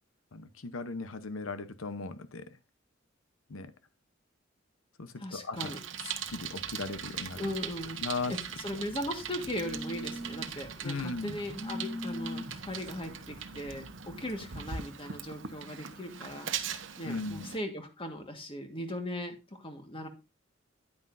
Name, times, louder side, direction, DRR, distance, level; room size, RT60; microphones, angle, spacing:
voice 1, 0.3-2.5 3.5-3.7 5.0-5.7 6.3-7.5 8.0-8.3 8.7-8.8 10.8-11.4 17.0-17.5, left 3 dB, 85° left, 0.9 m, -37 dB
voice 2, 5.1-5.8 7.3-8.0 8.3-16.5 17.0-20.1, left 1 dB, 25° left, 1.6 m, -38 dB
Bicycle, 5.6-17.6, right 8 dB, 65° right, 1.0 m, -41 dB
Telephone, 6.3-14.3, left 1 dB, 50° left, 2.9 m, -44 dB
9.9 x 9.5 x 2.6 m
head